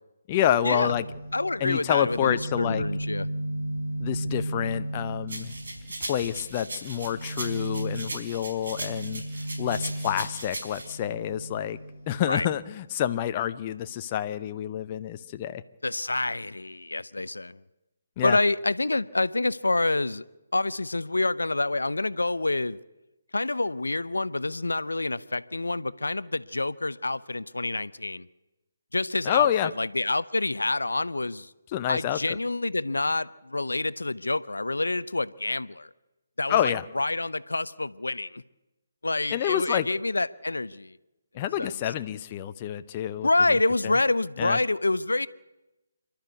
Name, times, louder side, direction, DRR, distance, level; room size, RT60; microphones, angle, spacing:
voice 1, 0.3-1.0 1.6-2.8 4.0-5.5 6.0-9.2 9.6-11.8 12.1-15.6 18.2-18.4 29.2-29.7 31.7-32.4 36.5-36.8 39.3-39.9 41.3-43.3 43.8-43.9 44.4-44.6, left 11 dB, 30° left, 10 dB, 0.7 m, -28 dB
sound 1, 0.7-12.4, right 1 dB, 50° right, 6.8 m, -35 dB
voice 2, 1.3-3.3 12.3-12.5 15.8-17.6 18.2-20.2 20.5-22.8 23.3-28.3 28.9-29.5 29.8-31.5 31.9-35.9 36.4-38.4 39.0-41.0 41.6-41.7 43.2-45.3, left 2 dB, 85° left, 17 dB, 0.7 m, -27 dB
sound 2, 5.3-10.9, right 2 dB, 70° right, 4.8 m, -38 dB
28.0 x 12.0 x 8.2 m, 1.0 s
figure-of-eight pair, 145°, 0 cm